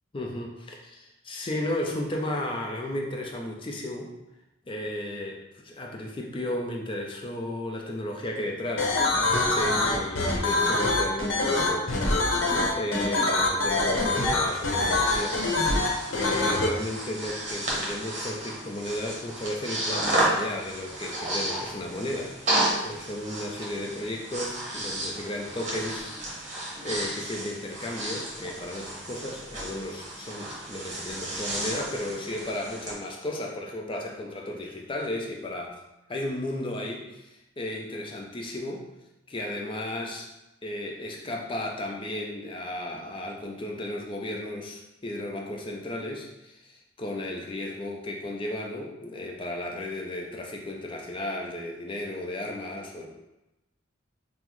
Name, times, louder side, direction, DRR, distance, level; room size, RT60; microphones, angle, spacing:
voice 1, 0.1-4.1 4.7-12.0 12.7-15.4 16.1-26.1 26.8-35.7 36.1-37.3 37.6-38.9 39.3-40.3 40.6-53.1, left 1 dB, 25° left, 1 dB, 0.5 m, -34 dB
sound 1, 8.8-16.7, left 2 dB, 90° left, 0.8 m, -24 dB
Breathing, 14.2-32.9, right 1 dB, 35° right, 1.0 m, -33 dB
5.6 x 2.0 x 3.0 m, 0.95 s
head